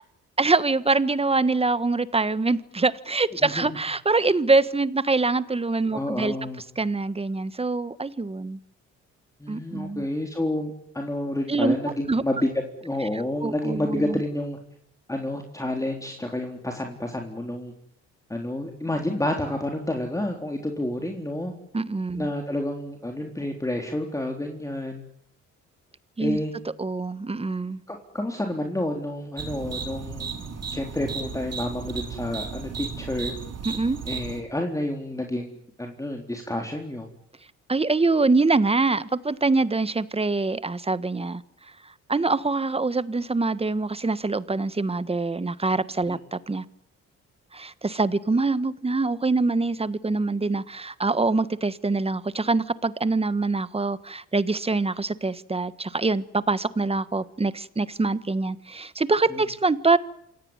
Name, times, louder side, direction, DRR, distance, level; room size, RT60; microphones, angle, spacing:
voice 1, 0.4-6.3 6.7-8.6 9.5-10.1 11.5-11.8 12.1-12.2 13.1-14.2 21.7-22.3 26.2-26.4 26.8-27.8 33.6-34.0 37.7-41.4 41.8-46.6 47.5-60.0, right 3 dB, 20° right, 15 dB, 1.5 m, -24 dB
voice 2, 5.9-6.6 9.4-12.5 12.8-14.6 15.1-17.7 18.3-21.5 22.2-25.0 26.2-26.5 27.9-30.3 30.7-33.3 34.1-35.5 35.8-37.1 46.1-46.2 59.3-59.4, left 1 dB, 10° left, 3 dB, 3.8 m, -29 dB
sound 1, 29.4-34.4, right 5 dB, 55° right, 7.5 m, -34 dB
27.5 x 18.0 x 9.8 m, 0.74 s
cardioid pair, 90°, 30 cm